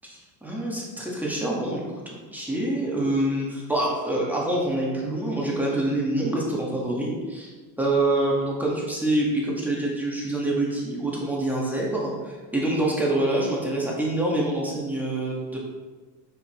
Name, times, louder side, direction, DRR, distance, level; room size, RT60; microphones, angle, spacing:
voice 1, 0.4-7.5 7.8-15.6, right 1 dB, 5° right, -4 dB, 1.5 m, -26 dB
7.1 x 5.5 x 3.1 m, 1.3 s
supercardioid pair, 120°, 49 cm